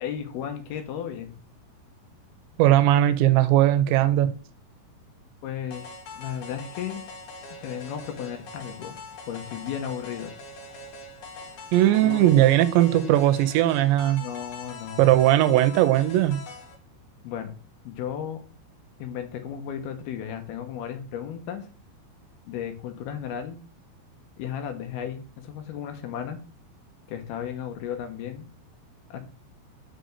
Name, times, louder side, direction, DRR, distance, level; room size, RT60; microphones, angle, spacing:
voice 1, 0.0-1.3 5.4-7.0 7.6-9.0 9.3-10.3 12.0-12.5 14.2-15.0 17.2-17.5 17.8-18.4 19.0-21.7 22.5-23.6 24.4-26.4 27.1-28.5 29.1-29.2, left 9 dB, 70° left, 2.8 m, -34 dB
voice 2, 2.6-4.4 11.7-14.2 15.0-16.4, right 13 dB, 85° right, 2.9 m, -19 dB
sound 1, 5.7-16.7, left 3 dB, 55° left, 2.8 m, -43 dB
6.6 x 5.1 x 6.6 m
omnidirectional pair, 5.1 m